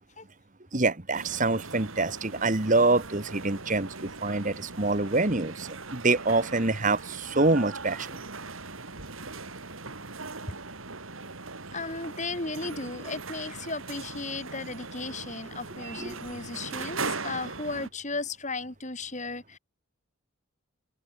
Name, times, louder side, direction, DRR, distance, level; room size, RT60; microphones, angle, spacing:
voice 1, 0.7-8.2 16.0-16.2 16.8-16.9, right 3 dB, 40° right, 1.6 m, -26 dB
sound 1, 1.1-17.9, right 4 dB, 80° right, 3.5 m, -40 dB
voice 2, 11.7-19.6, left 3 dB, 35° left, 5.0 m, -35 dB
open air
head